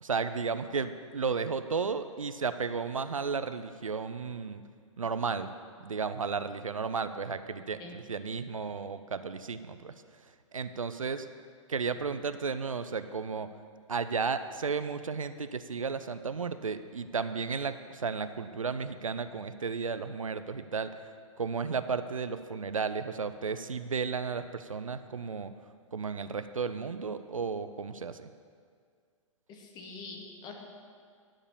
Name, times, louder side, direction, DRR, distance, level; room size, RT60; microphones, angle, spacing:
voice 1, 0.0-4.6 5.0-5.5 5.8-9.9 10.5-11.3 11.7-13.5 13.9-20.9 21.4-25.5 25.9-28.3, right 5 dB, 80° right, 11 dB, 0.5 m, -33 dB
voice 2, 29.5-30.5, left 4 dB, 25° left, 1 dB, 1.4 m, -44 dB
11.0 x 4.9 x 7.1 m, 2.1 s
figure-of-eight pair, 110°, 17 cm